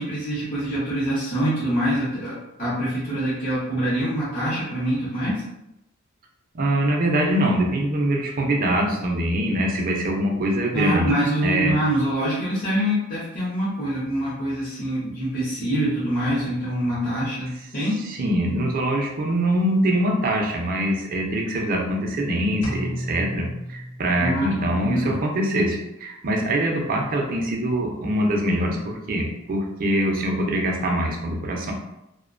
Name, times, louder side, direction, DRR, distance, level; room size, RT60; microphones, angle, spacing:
voice 1, 0.0-5.3 10.7-18.0 24.2-25.2, equal, 45° left, -10 dB, 0.7 m, -25 dB
voice 2, 6.5-11.1 11.4-11.7 18.1-31.7, right 1 dB, 45° right, 1 dB, 0.4 m, -23 dB
sound 1, 22.6-24.6, equal, 85° left, 0.6 m, -32 dB
2.5 x 2.1 x 2.4 m, 0.88 s
head